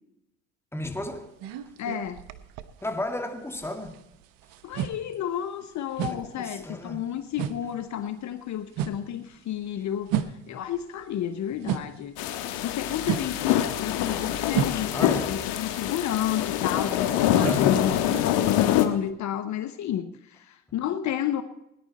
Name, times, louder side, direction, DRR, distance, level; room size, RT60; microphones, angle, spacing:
voice 1, 0.7-1.3 2.8-4.0 4.8-4.9 6.0-7.1 14.9-15.4 17.4-17.9, left 2 dB, 5° left, 2.2 m, -33 dB
sound 1, 0.8-3.2 3.5-12.1 12.5-19.1, right 10 dB, 75° right, 1.1 m, -34 dB
voice 2, 1.8-2.2 4.6-21.4, left 10 dB, 55° left, 1.0 m, -31 dB
sound 2, 12.2-18.9, left 12 dB, 80° left, 1.3 m, -25 dB
19.0 x 10.5 x 4.2 m
supercardioid pair, 75°, 34 cm